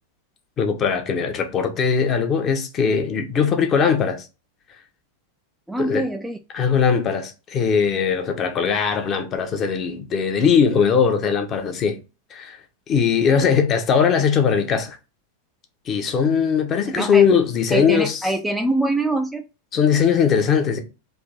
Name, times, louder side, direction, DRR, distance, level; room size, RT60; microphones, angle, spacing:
voice 1, 0.6-4.3 5.8-6.1 6.5-12.0 12.3-12.6 12.9-15.0 15.9-18.2 19.7-20.8, left 6 dB, 30° left, 0.8 m, -20 dB
voice 2, 5.7-6.4 16.9-17.2 17.7-19.4, right 2 dB, 5° right, 0.4 m, -24 dB
3.5 x 2.6 x 4.0 m
figure-of-eight pair, 90°, 0 cm